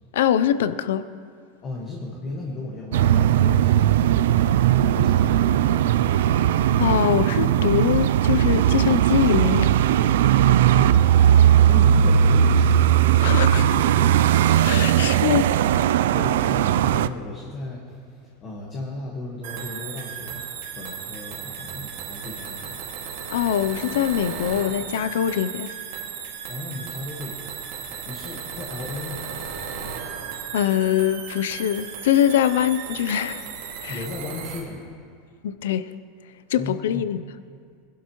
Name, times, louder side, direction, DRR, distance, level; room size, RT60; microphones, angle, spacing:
voice 1, 0.1-1.0 6.3-6.5 6.7-9.7 13.2-13.6 14.6-15.5 23.3-25.7 30.5-33.4 33.8-34.0 35.4-35.9 36.5-37.2, left 10 dB, 90° left, 0.5 m, -23 dB
voice 2, 1.6-5.7 10.7-11.1 11.6-14.6 16.1-22.9 26.5-27.6 28.0-29.3 33.9-34.9 36.6-37.0, left 2 dB, 25° left, 1.4 m, -35 dB
sound 1, 2.9-17.1, right 10 dB, 80° right, 0.3 m, -18 dB
sound 2, 19.4-34.6, right 7 dB, 60° right, 2.1 m, -35 dB
21.0 x 12.0 x 3.1 m
supercardioid pair, 170°, 0 cm